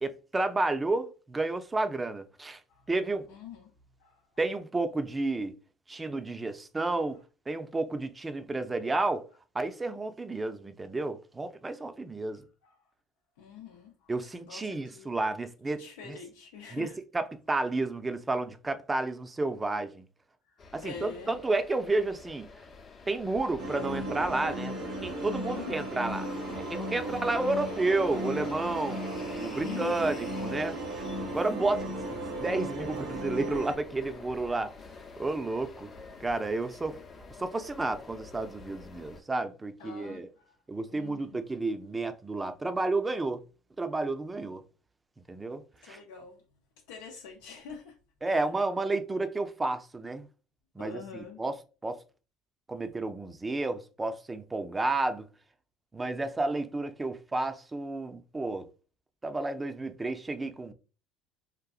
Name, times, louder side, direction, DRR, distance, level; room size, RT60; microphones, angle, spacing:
voice 1, 0.0-2.6 2.9-3.3 4.4-5.5 5.9-7.2 7.5-9.2 9.5-12.4 14.1-16.2 16.7-20.0 20.7-22.5 23.1-24.8 25.0-31.0 31.3-34.7 35.2-35.9 36.2-37.0 37.4-40.3 40.7-43.4 43.8-44.6 45.3-46.0 48.2-50.3 50.8-51.6 51.8-52.0 52.7-55.3 55.9-58.7 59.2-60.7, right 2 dB, 20° right, 0.5 m, -31 dB
voice 2, 3.3-3.7 4.0-4.2 12.6-12.7 13.4-15.1 15.8-17.0 20.5-21.4 25.1-25.8 29.6-30.1 39.8-40.6 40.9-41.4 45.8-46.4 46.9-47.9 48.2-48.5 50.8-51.4, left 6 dB, 85° left, 0.6 m, -45 dB
sound 1, 20.6-39.2, left 4 dB, 40° left, 0.7 m, -47 dB
sound 2, 23.6-33.7, right 1 dB, 80° right, 1.0 m, -35 dB
3.8 x 2.5 x 2.4 m
supercardioid pair, 80°, 0 cm